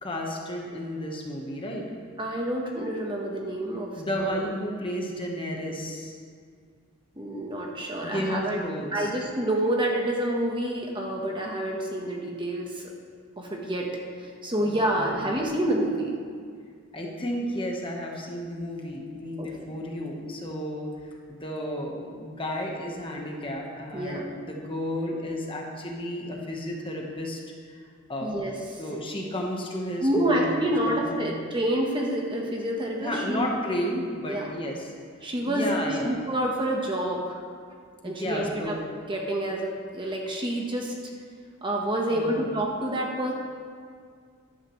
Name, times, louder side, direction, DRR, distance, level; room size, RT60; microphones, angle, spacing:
voice 1, 0.0-1.9 3.9-6.2 8.0-9.1 14.6-15.2 16.9-27.8 28.1-28.5 28.8-31.3 33.0-34.9 35.5-36.2 38.0-38.8 42.1-42.4, equal, 25° left, -1 dB, 1.3 m, -32 dB
voice 2, 2.2-4.5 7.2-8.6 8.9-12.9 13.4-13.9 14.2-16.1 19.4-19.5 23.9-24.2 28.2-28.5 30.0-33.5 34.3-34.5 35.2-35.7 36.0-37.4 38.0-38.8 39.0-40.9 41.6-43.3, right 1 dB, 20° right, -1 dB, 1.2 m, -28 dB
14.0 x 11.5 x 3.2 m, 2.1 s
head